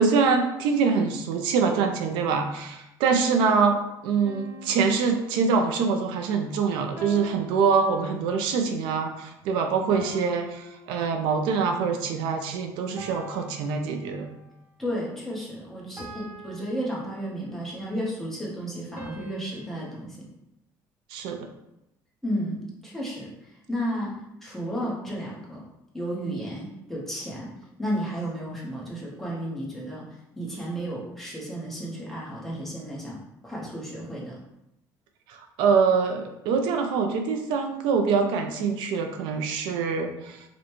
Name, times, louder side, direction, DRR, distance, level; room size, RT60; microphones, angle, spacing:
voice 1, 0.0-14.3 21.1-21.5 35.3-40.4, right 5 dB, 90° right, 5 dB, 0.5 m, -24 dB
sound 1, 4.2-5.9 7.0-8.5 10.0-11.6 13.0-14.5 16.0-17.7 19.0-20.0, right 2 dB, 25° right, 0.7 m, -45 dB
voice 2, 14.8-20.3 22.2-24.1 24.4-25.6 25.9-27.5 27.8-34.4, equal, 5° left, -5 dB, 0.9 m, -33 dB
4.9 x 2.2 x 3.0 m, 0.87 s
cardioid pair, 155°, 8 cm